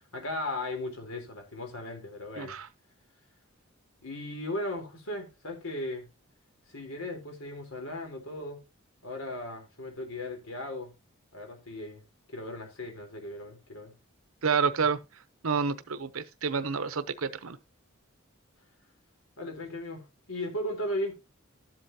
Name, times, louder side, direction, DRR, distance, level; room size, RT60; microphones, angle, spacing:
voice 1, 0.1-2.6 4.0-6.1 6.7-8.6 9.0-10.9 11.3-12.0 12.3-13.9 19.4-21.1, left 1 dB, 90° left, 3.7 m, -37 dB
voice 2, 2.4-2.7 14.4-15.0 15.4-17.6, right 5 dB, 80° right, 0.8 m, -29 dB
13.0 x 7.9 x 2.8 m
head